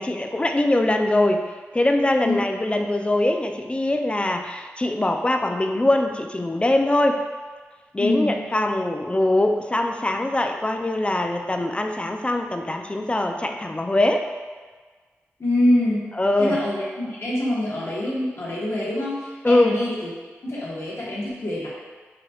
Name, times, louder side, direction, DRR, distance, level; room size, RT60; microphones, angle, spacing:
voice 1, 0.0-7.2 7.9-14.3 16.2-16.6 19.4-19.8, left 1 dB, 20° left, 5 dB, 0.4 m, -22 dB
voice 2, 8.0-8.4 15.4-16.1 16.4-20.1 20.4-21.7, left 1 dB, 60° left, -7 dB, 1.3 m, -25 dB
4.9 x 2.8 x 2.3 m, 1.4 s
cardioid pair, 40°, 5 cm